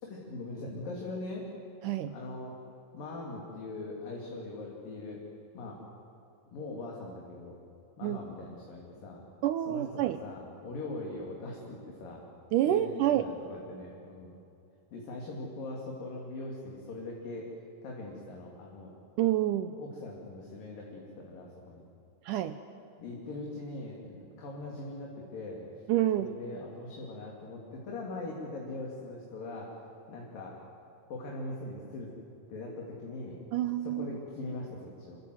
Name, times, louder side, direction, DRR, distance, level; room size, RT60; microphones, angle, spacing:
voice 1, 0.0-1.4 2.1-2.6 2.9-5.2 5.5-5.8 6.5-7.6 8.0-9.2 9.7-12.2 12.7-14.3 14.9-17.5 17.8-18.9 19.8-21.9 23.0-25.7 26.2-29.7 30.1-30.6 31.1-32.1 32.5-33.4 33.8-35.2, left 2 dB, 60° left, -2 dB, 4.3 m, -41 dB
voice 2, 1.8-2.2 8.0-8.2 9.4-10.2 12.5-13.3 19.2-19.8 22.3-22.6 25.9-26.3 33.5-34.1, right 13 dB, 85° right, 10 dB, 1.8 m, -28 dB
27.0 x 24.5 x 7.8 m, 2.7 s
omnidirectional pair, 4.5 m